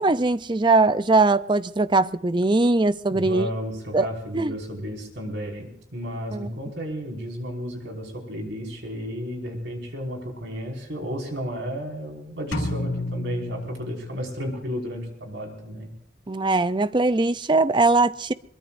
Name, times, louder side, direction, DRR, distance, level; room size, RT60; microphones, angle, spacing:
voice 1, 0.0-3.5 3.9-4.1 4.3-4.5 6.3-6.5 16.3-18.3, right 3 dB, 25° right, 0.5 m, -21 dB
voice 2, 3.1-15.9, equal, 70° right, 5.5 m, -33 dB
sound 1, 12.5-14.5, left 1 dB, 85° left, 2.4 m, -31 dB
23.5 x 22.5 x 2.6 m
head